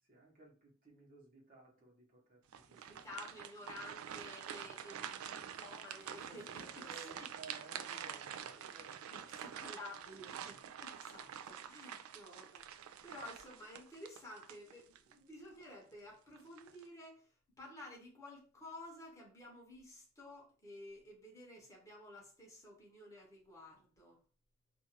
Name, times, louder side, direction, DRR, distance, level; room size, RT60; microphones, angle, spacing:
voice 1, 0.1-3.2 4.6-4.8 5.2-5.4 6.2-9.5, right 3 dB, 40° right, 1.0 m, -58 dB
sound 1, 2.5-15.1 15.6-15.8 16.4-16.8, right 9 dB, 80° right, 0.3 m, -47 dB
voice 2, 2.7-7.3 8.4-8.5 8.8-17.3 17.6-24.2, left 1 dB, 15° left, 0.9 m, -53 dB
2.5 x 2.4 x 3.0 m
head